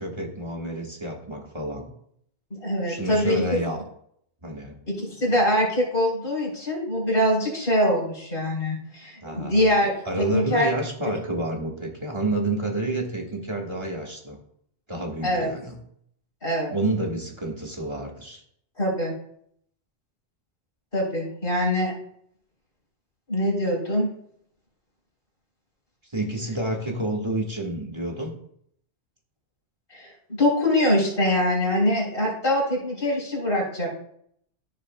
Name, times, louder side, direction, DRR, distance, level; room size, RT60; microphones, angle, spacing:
voice 1, 0.0-1.9 2.9-3.8 4.4-4.8 9.2-9.7 10.0-14.4 14.9-15.8 16.7-18.4 26.1-28.3, right 1 dB, 25° right, 1 dB, 1.5 m, -29 dB
voice 2, 2.5-3.4 4.9-9.9 10.3-10.7 15.2-15.5 16.4-16.7 18.8-19.1 20.9-21.9 23.3-24.1 29.9-30.1 30.4-34.0, left 1 dB, 50° left, -2 dB, 3.9 m, -23 dB
14.5 x 6.8 x 2.2 m, 0.68 s
omnidirectional pair, 1.2 m